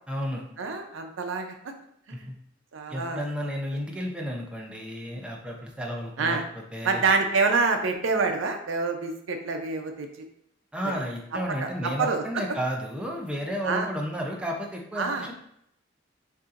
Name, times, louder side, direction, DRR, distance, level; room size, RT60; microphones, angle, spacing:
voice 1, 0.1-0.4 2.1-2.3 2.9-7.0 10.7-15.3, equal, 5° right, -1 dB, 0.6 m, -32 dB
voice 2, 0.6-1.6 2.2-2.3 2.7-3.5 6.2-6.4 6.8-10.3 11.6-12.2 13.6-13.9 15.0-15.3, right 4 dB, 85° right, 5 dB, 0.6 m, -27 dB
6.5 x 2.7 x 2.5 m, 0.73 s
head